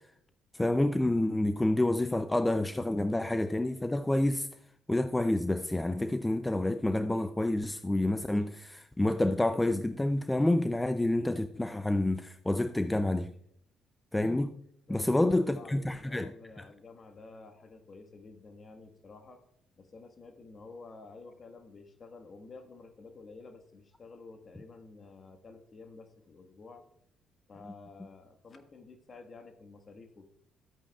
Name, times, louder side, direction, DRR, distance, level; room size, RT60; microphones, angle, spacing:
voice 1, 0.5-4.5 4.9-13.3 14.1-14.6 14.9-16.3, left 1 dB, 15° left, 0.4 m, -28 dB
voice 2, 14.9-19.4 19.8-26.8 27.5-30.3, left 3 dB, 45° left, 1.5 m, -51 dB
12.5 x 8.6 x 2.4 m
supercardioid pair, 65°, 0 cm